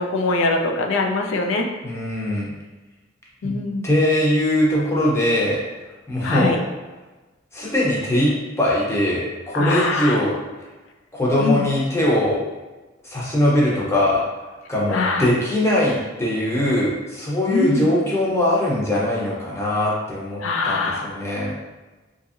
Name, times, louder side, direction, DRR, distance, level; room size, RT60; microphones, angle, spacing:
voice 1, 0.0-1.7 3.4-3.9 6.2-6.6 9.5-10.2 11.4-11.6 14.9-15.3 17.5-17.9 20.4-21.1, left 3 dB, 85° left, 2 dB, 0.4 m, -22 dB
voice 2, 1.8-2.5 3.4-3.6 3.8-5.6 6.1-6.5 7.5-10.3 11.1-12.4 13.0-14.2 14.7-21.5, left 1 dB, 15° left, -5 dB, 0.6 m, -21 dB
2.8 x 2.6 x 2.4 m, 1.2 s
head